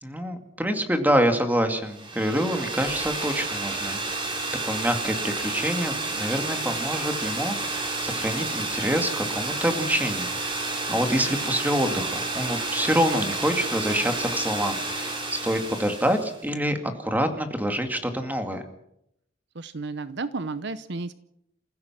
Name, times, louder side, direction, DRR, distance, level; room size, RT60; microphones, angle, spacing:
voice 1, 0.0-4.4 4.6-18.6, equal, 10° right, 6 dB, 2.2 m, -26 dB
sound 1, 1.9-16.4, right 2 dB, 25° right, 3.4 m, -30 dB
voice 2, 19.5-21.1, right 3 dB, 65° right, 13 dB, 0.8 m, -32 dB
28.5 x 15.5 x 6.1 m, 0.78 s
head